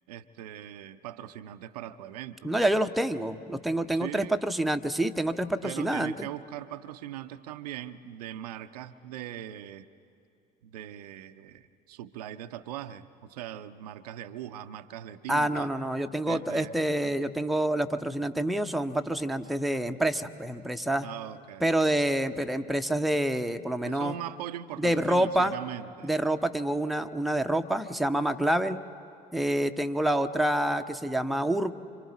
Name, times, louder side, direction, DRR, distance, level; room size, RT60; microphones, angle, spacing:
voice 1, 0.1-2.5 3.9-4.3 5.6-9.9 10.6-15.7 16.3-16.7 21.0-21.9 23.8-26.1, right 12 dB, 70° right, 11 dB, 0.6 m, -40 dB
voice 2, 2.4-6.3 15.3-21.1 21.6-24.1 24.8-25.6 26.0-28.8 29.3-31.7, right 1 dB, ahead, 6 dB, 0.8 m, -27 dB
26.5 x 26.0 x 4.1 m, 2.5 s
figure-of-eight pair, 60°, 21 cm